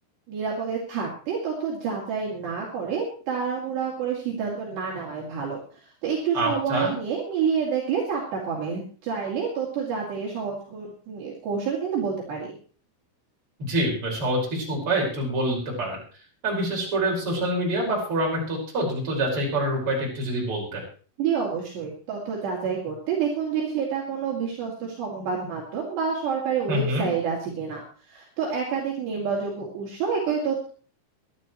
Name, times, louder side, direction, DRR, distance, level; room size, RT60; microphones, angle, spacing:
voice 1, 0.3-5.6 6.0-12.5 21.2-30.7, right 6 dB, 60° right, -3 dB, 4.6 m, -28 dB
voice 2, 6.3-6.9 13.6-16.0 16.4-20.8 26.7-27.1, right 1 dB, 25° right, -2 dB, 5.6 m, -26 dB
23.0 x 12.0 x 3.1 m, 0.39 s
omnidirectional pair, 5.7 m